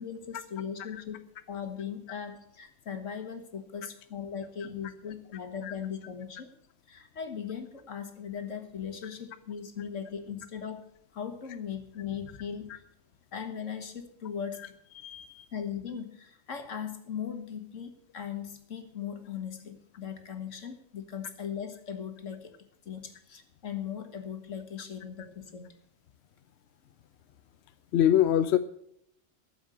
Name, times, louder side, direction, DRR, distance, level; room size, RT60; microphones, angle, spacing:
voice 1, 0.0-6.5 6.9-10.8 11.1-12.8 13.3-14.6 15.5-22.5 22.9-25.7, left 7 dB, 85° left, 7 dB, 1.9 m, -38 dB
voice 2, 15.0-15.5 27.9-28.6, left 11 dB, 65° left, 11 dB, 0.9 m, -24 dB
13.0 x 7.2 x 7.7 m, 0.70 s
omnidirectional pair, 1.3 m